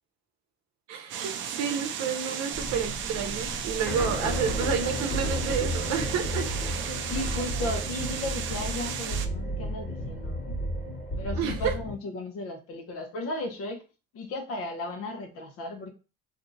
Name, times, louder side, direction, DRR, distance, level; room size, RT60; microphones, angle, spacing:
voice 1, 0.9-7.0 11.4-11.7, right 7 dB, 65° right, 0.8 m, -30 dB
sound 1, 1.1-9.3, right 8 dB, 45° right, 0.4 m, -35 dB
sound 2, 2.5-9.0, equal, 5° left, 0.6 m, -43 dB
sound 3, 3.8-11.9, equal, 35° left, 1.5 m, -32 dB
voice 2, 7.1-10.6 11.2-13.8 14.1-15.9, left 2 dB, 50° left, 0.9 m, -35 dB
2.7 x 2.4 x 3.9 m
cardioid pair, 150°, 29 cm